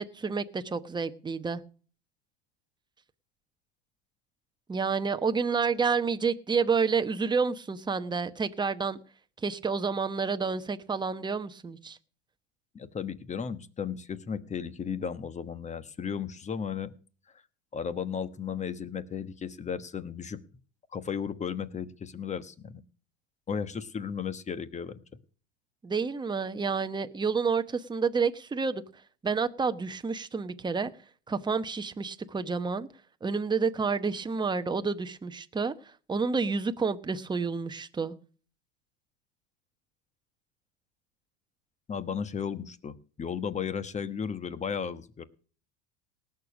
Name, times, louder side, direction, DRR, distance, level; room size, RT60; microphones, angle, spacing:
voice 1, 0.0-1.6 4.7-9.0 9.4-12.0 25.8-28.8 29.2-30.9 31.3-32.9 33.2-35.7 36.1-38.1, right 5 dB, 10° right, 0.9 m, -29 dB
voice 2, 12.7-16.9 17.7-20.4 20.9-22.8 23.5-25.0 41.9-45.2, left 7 dB, 20° left, 1.2 m, -35 dB
18.5 x 6.8 x 6.2 m
supercardioid pair, 115°, 35 cm